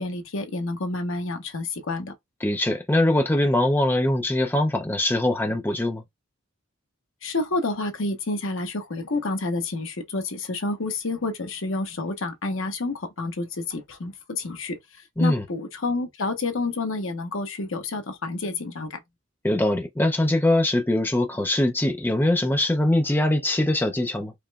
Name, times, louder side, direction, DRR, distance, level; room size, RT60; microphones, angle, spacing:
voice 1, 0.0-2.1 7.2-19.0, left 2 dB, 70° left, 0.9 m, -29 dB
voice 2, 2.4-6.0 15.2-15.4 19.4-24.3, left 1 dB, 10° left, 0.5 m, -22 dB
4.9 x 3.0 x 2.3 m
head